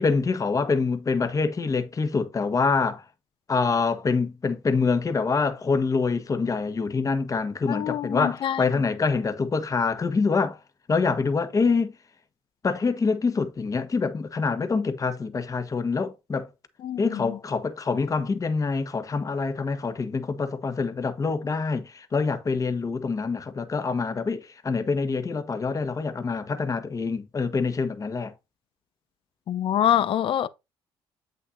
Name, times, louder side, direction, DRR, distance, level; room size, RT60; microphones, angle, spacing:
voice 1, 0.0-3.0 3.5-10.6 10.9-11.9 12.6-16.5 17.0-28.3, left 4 dB, 35° left, 1.4 m, -25 dB
voice 2, 7.7-8.7 16.8-17.4 29.5-30.5, left 10 dB, 55° left, 0.7 m, -25 dB
8.1 x 6.6 x 2.7 m
supercardioid pair, 75°, 11 cm